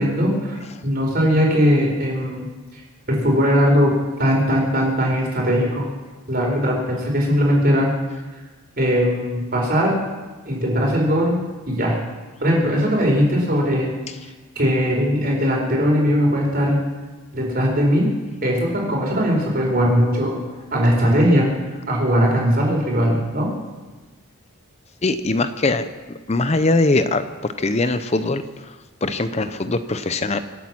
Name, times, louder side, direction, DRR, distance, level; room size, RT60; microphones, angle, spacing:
voice 1, 0.0-2.5 3.1-3.9 4.2-5.9 6.3-7.9 8.8-10.0 10.5-12.0 12.4-13.9 14.6-16.8 17.3-18.1 18.4-20.4 20.7-21.5 21.9-23.5, equal, 45° right, -1 dB, 4.4 m, -19 dB
voice 2, 25.0-25.9 26.3-28.7 29.0-30.4, left 2 dB, 30° left, 11 dB, 0.6 m, -21 dB
26.0 x 8.7 x 6.1 m, 1.2 s
head